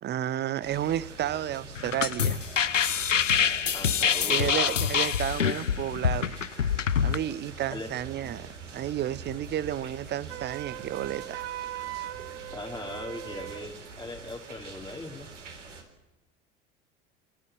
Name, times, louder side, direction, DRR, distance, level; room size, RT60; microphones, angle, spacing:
voice 1, 0.0-2.4 4.3-6.4 7.0-11.4, right 11 dB, 30° right, 20 dB, 0.8 m, -32 dB
sound 1, 0.6-15.8, right 4 dB, 75° right, 3.9 m, -45 dB
sound 2, 1.8-7.2, left 7 dB, 85° left, 0.6 m, -26 dB
voice 2, 3.7-4.8 7.7-7.9 12.5-15.3, left 2 dB, 10° left, -1 dB, 2.3 m, -39 dB
Wind instrument woodwind instrument, 10.3-13.7, right 16 dB, 60° right, 0.8 m, -39 dB
28.0 x 12.5 x 8.7 m, 1.0 s
figure-of-eight pair, 70°, 36 cm